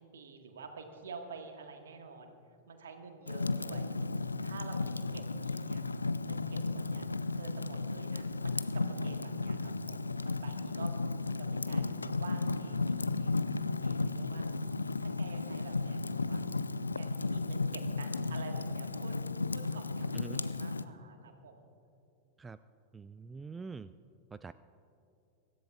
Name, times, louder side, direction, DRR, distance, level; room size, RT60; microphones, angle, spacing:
voice 1, 0.0-2.4 2.7-3.9 4.4-5.8 6.2-7.1 7.3-14.5 15.0-16.4 16.9-19.2 19.5-21.7, right 4 dB, 65° right, 5 dB, 1.6 m, -49 dB
Fire, 3.3-20.8, left 3 dB, 80° left, 0.4 m, -34 dB
voice 2, 22.9-23.9 24.3-24.5, right 4 dB, 15° right, 13 dB, 0.3 m, -44 dB
24.5 x 14.5 x 2.4 m, 2.8 s
figure-of-eight pair, 90°, 0 cm